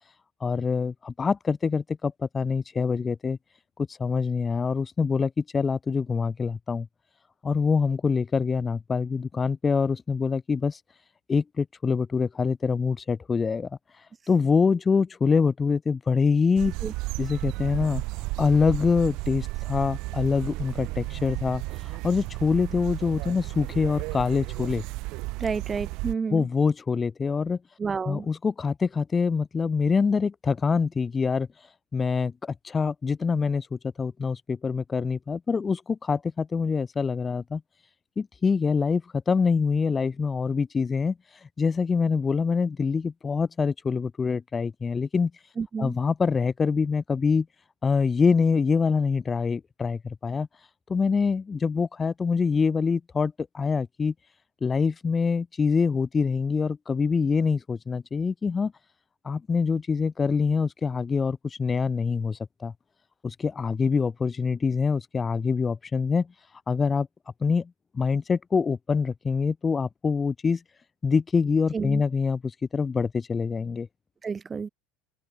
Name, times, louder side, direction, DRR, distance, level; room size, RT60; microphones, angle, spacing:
voice 1, 0.4-3.4 4.0-6.9 7.4-10.8 11.3-13.7 14.3-16.7 17.2-18.0 18.4-24.8 26.3-27.6 28.1-31.5 31.9-37.6 38.2-41.2 41.6-45.3 45.8-47.5 47.8-50.5 50.9-54.1 54.6-58.7 59.2-62.7 63.2-66.3 66.7-67.1 67.4-70.6 71.0-73.9, left 5 dB, 20° left, 7.4 m, -25 dB
sound 1, 16.6-26.1, right 23 dB, 60° right, 5.2 m, -33 dB
voice 2, 25.4-26.5 27.8-28.3 45.6-46.0 71.7-72.0 74.2-74.7, right 5 dB, 20° right, 5.8 m, -30 dB
open air
supercardioid pair, 120°, 0 cm